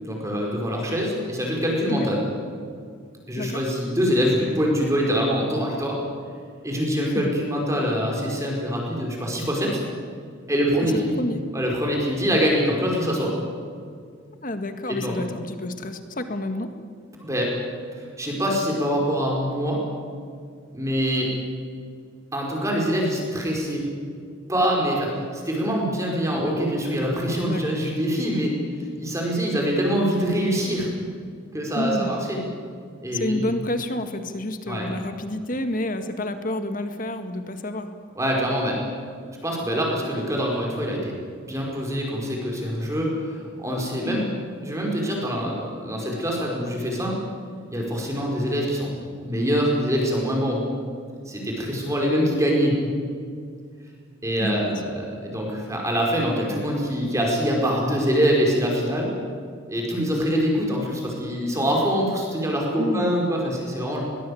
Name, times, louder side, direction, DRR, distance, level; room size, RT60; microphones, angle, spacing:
voice 1, 0.0-2.2 3.3-6.0 6.6-9.8 10.5-11.2 11.5-13.3 14.9-15.2 17.2-17.6 18.0-19.8 20.7-21.3 22.3-23.8 24.5-28.5 29.0-30.9 31.5-32.4 33.0-33.5 34.7-34.9 38.2-38.8 39.4-41.1 41.5-44.2 44.6-47.3 47.7-48.9 49.2-50.6 51.3-52.8 54.2-59.1 59.7-64.0, equal, 15° right, -1 dB, 5.1 m, -24 dB
voice 2, 10.8-11.4 14.4-16.7 27.4-27.8 31.7-32.1 33.1-37.9 44.1-44.4 54.4-54.8 62.8-63.1, left 1 dB, 40° left, 8 dB, 1.9 m, -29 dB
21.5 x 20.5 x 8.6 m, 2.1 s
head